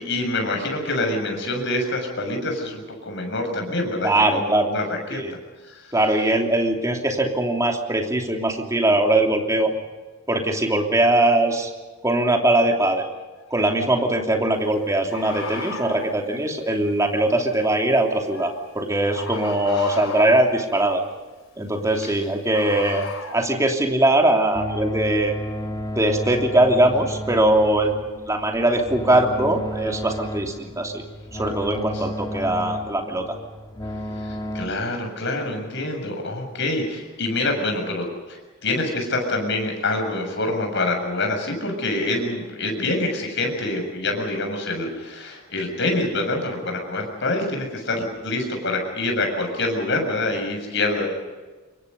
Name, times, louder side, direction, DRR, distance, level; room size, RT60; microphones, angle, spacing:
voice 1, 0.0-5.2 5.7-5.9 19.8-19.9 22.0-22.1 31.9-32.0 34.2-51.1, left 2 dB, 55° left, 3 dB, 7.1 m, -26 dB
voice 2, 4.0-4.7 5.1-5.3 5.9-9.7 10.3-11.7 12.0-13.1 13.5-21.0 21.6-25.4 25.9-31.0 31.3-33.4, right 1 dB, 15° right, 2 dB, 3.0 m, -21 dB
Bird, 13.4-13.5 15.1-16.0 18.3-18.6 19.1-20.5 22.5-23.4, left 4 dB, 70° left, 4.4 m, -34 dB
sound 1, 24.5-34.7, equal, 20° left, 2.3 m, -32 dB
27.5 x 23.0 x 5.4 m, 1.3 s
head